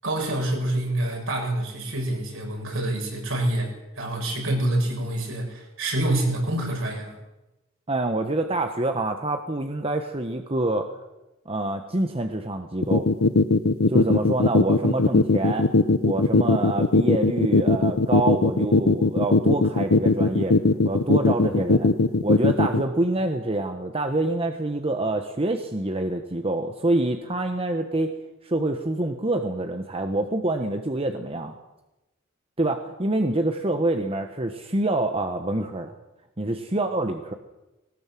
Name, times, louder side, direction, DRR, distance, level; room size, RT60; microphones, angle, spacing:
voice 1, 0.0-7.1, right 1 dB, 65° right, 0 dB, 7.3 m, -27 dB
voice 2, 7.9-10.9 11.4-13.1 13.9-15.7 16.0-20.5 20.8-21.9 22.2-28.1 28.4-31.5 32.6-35.9 36.4-37.3, right 2 dB, 25° right, 6 dB, 1.2 m, -26 dB
sound 1, 12.8-22.8, left 3 dB, 85° left, 1.0 m, -18 dB
20.5 x 18.5 x 7.7 m, 0.99 s
head